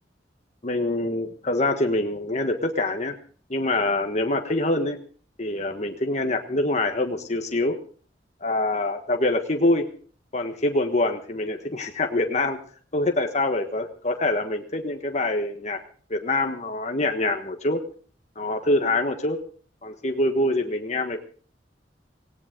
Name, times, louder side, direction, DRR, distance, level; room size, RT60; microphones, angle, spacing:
voice 1, 0.6-3.1 3.5-5.0 5.4-7.8 8.4-10.0 10.3-12.6 12.9-15.8 16.1-17.8 18.4-19.4 19.8-21.2, left 2 dB, 40° left, 4 dB, 1.4 m, -25 dB
18.0 x 18.0 x 3.8 m, 0.42 s
head